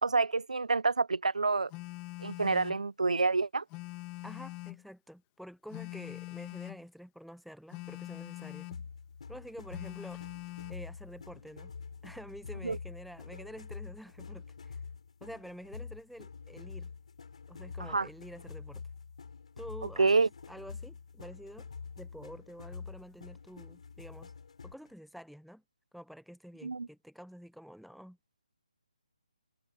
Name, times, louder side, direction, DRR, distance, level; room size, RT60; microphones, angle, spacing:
voice 1, 0.0-1.7 2.2-3.6 12.6-12.8 17.9-18.1 20.0-20.3 26.6-26.9, right 4 dB, 85° right, 0.7 m, -28 dB
Telephone, 1.7-2.8 3.7-4.9 5.7-6.9 7.7-8.8 9.7-10.8, left 23 dB, 20° left, 1.6 m, -43 dB
voice 2, 4.2-8.7 9.3-10.2 10.7-11.7 12.0-14.8 15.2-16.9 17.5-18.8 19.6-21.7 22.0-24.3 24.6-25.6 25.9-28.2, equal, ahead, 0.9 m, -48 dB
sound 1, 8.7-24.9, left 5 dB, 65° left, 5.3 m, -46 dB
hypercardioid pair, 155°, 4 cm